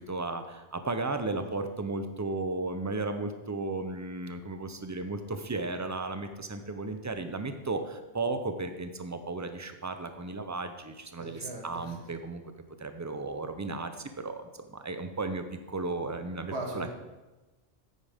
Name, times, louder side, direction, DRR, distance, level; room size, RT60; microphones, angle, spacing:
voice 1, 0.0-12.4 12.8-16.9, right 3 dB, 20° right, 8 dB, 0.5 m, -35 dB
voice 2, 11.2-11.9 16.5-16.9, right 2 dB, 85° right, 1 dB, 1.8 m, -38 dB
9.5 x 8.7 x 3.5 m, 1.1 s
omnidirectional pair, 1.1 m